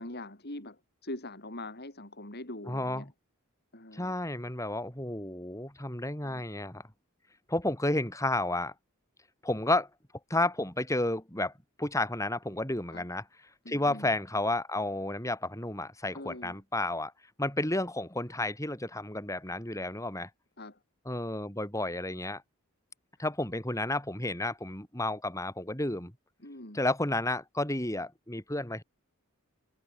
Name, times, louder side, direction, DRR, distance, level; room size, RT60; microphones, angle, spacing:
voice 1, 0.0-3.1 3.7-4.2 6.2-6.4 12.9-13.1 13.6-14.1 16.1-16.6 20.6-20.8 26.4-26.8, left 1 dB, 45° left, 4.2 m, -43 dB
voice 2, 2.7-3.1 3.9-6.8 7.5-8.7 9.4-9.9 10.3-11.5 11.8-13.2 13.7-17.1 17.4-20.3 21.1-22.4 23.2-26.1 26.7-28.8, left 2 dB, 15° left, 5.4 m, -31 dB
head